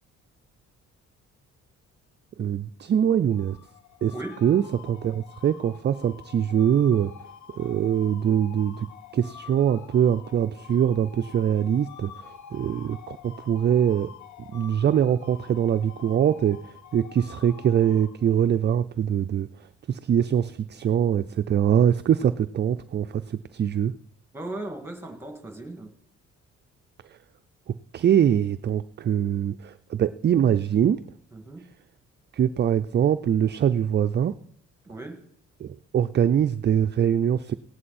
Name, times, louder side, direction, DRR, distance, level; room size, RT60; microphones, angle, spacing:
voice 1, 2.4-3.6 4.0-4.1 4.4-7.1 7.5-8.9 9.1-14.1 14.4-19.5 19.9-23.9 27.7-31.0 32.3-34.4 35.6-37.5, right 9 dB, 35° right, 11 dB, 0.4 m, -23 dB
sound 1, 3.3-18.5, left 9 dB, 75° left, 1.0 m, -47 dB
voice 2, 4.1-4.4 24.3-25.9 31.3-31.7 34.8-35.2, right 2 dB, 10° right, 5 dB, 2.1 m, -37 dB
17.0 x 9.6 x 4.2 m, 0.70 s
cardioid pair, 90°, 30 cm